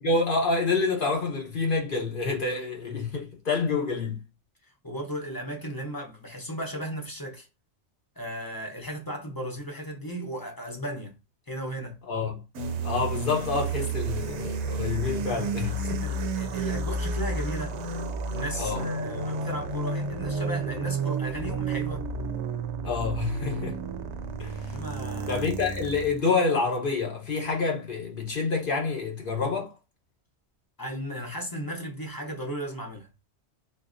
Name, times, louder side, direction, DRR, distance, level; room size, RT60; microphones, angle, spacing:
voice 1, 0.0-4.2 12.1-12.4 12.8-16.1 18.6-18.9 22.8-23.8 24.4-24.7 25.3-29.7, left 4 dB, 50° left, 1.0 m, -27 dB
voice 2, 4.8-7.5 8.2-11.2 11.5-12.0 15.7-17.8 18.3-22.1 24.7-25.6 30.8-33.1, equal, 20° left, 0.8 m, -35 dB
sound 1, 12.6-26.2, right 3 dB, 75° right, 0.9 m, -31 dB
4.0 x 2.6 x 2.5 m
omnidirectional pair, 1.2 m